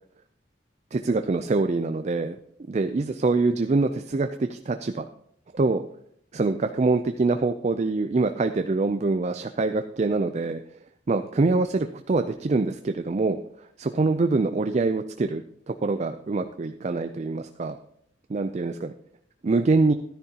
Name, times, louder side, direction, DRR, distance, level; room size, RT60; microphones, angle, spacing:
voice 1, 0.9-2.4 2.7-5.1 5.5-5.8 6.3-10.6 11.1-17.8 18.3-18.9 19.4-19.9, right 3 dB, 35° right, 8 dB, 0.4 m, -25 dB
12.5 x 10.5 x 2.8 m, 0.69 s
head